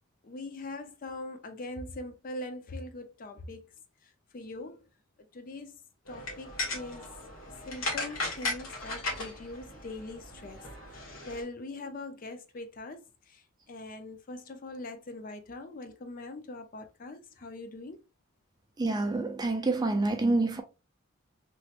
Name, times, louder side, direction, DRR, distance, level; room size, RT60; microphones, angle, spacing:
voice 1, 0.2-3.7 4.3-4.8 5.3-5.7 6.1-7.1 7.7-10.6 10.9-13.0 13.3-13.4 13.7-18.0, left 2 dB, 40° left, 0.4 m, -42 dB
sound 1, 6.1-11.4, left 2 dB, 85° left, 1.3 m, -37 dB
voice 2, 18.8-20.6, right 2 dB, 20° right, 0.4 m, -27 dB
3.0 x 2.9 x 2.4 m
head